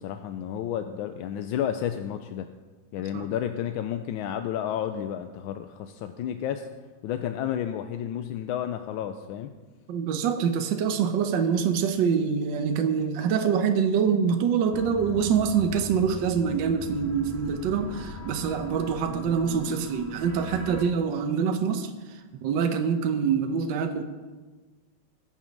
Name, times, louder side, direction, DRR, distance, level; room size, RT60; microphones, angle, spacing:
voice 1, 0.0-2.5 2.9-6.7 7.0-9.5, left 10 dB, 85° left, 8 dB, 1.4 m, -31 dB
voice 2, 9.9-24.0, right 6 dB, 70° right, 6 dB, 1.5 m, -25 dB
sound 1, 14.7-20.8, right 1 dB, 15° right, 0.5 m, -40 dB
20.0 x 7.3 x 5.3 m, 1.3 s
omnidirectional pair, 2.2 m